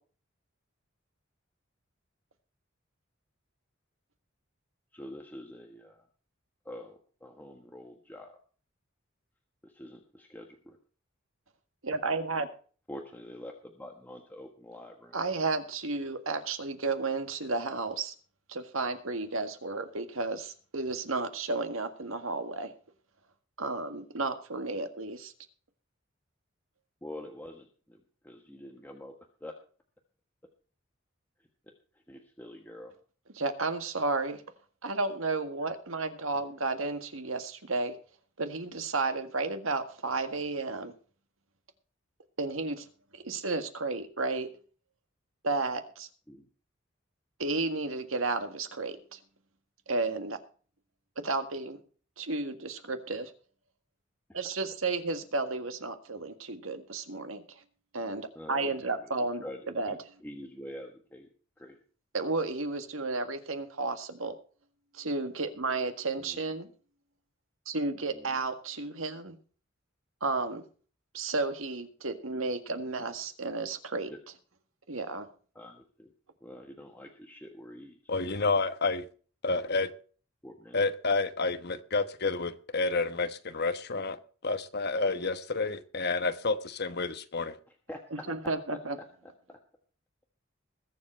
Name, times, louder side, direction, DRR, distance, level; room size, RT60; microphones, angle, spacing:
voice 1, 4.9-6.1 6.6-8.4 9.6-10.8 12.9-15.2 27.0-29.5 31.9-32.9 36.3-36.4 46.3-46.5 58.3-59.1 59.4-61.3 61.6-61.8 66.2-66.4 68.1-68.4 72.7-72.8 74.1-74.2 75.5-76.1 76.4-78.0 80.4-80.8 87.9-88.0 89.5-89.6, left 1 dB, 10° left, 1.5 m, -46 dB
voice 2, 11.8-12.5 15.1-18.1 18.5-22.7 23.6-25.3 33.4-34.4 34.8-37.9 38.4-40.9 42.4-42.8 43.1-44.5 45.4-46.1 47.4-49.2 49.9-50.4 51.2-51.8 52.2-53.3 54.3-57.4 57.9-59.4 59.7-59.9 62.1-64.3 64.9-66.7 67.6-69.3 70.2-70.6 71.1-74.1 74.9-75.3 88.3-89.0, right 3 dB, 85° right, 1.8 m, -32 dB
voice 3, 78.1-79.0 79.4-79.9 80.7-87.6, left 3 dB, 55° left, 1.2 m, -30 dB
21.0 x 7.6 x 4.4 m
head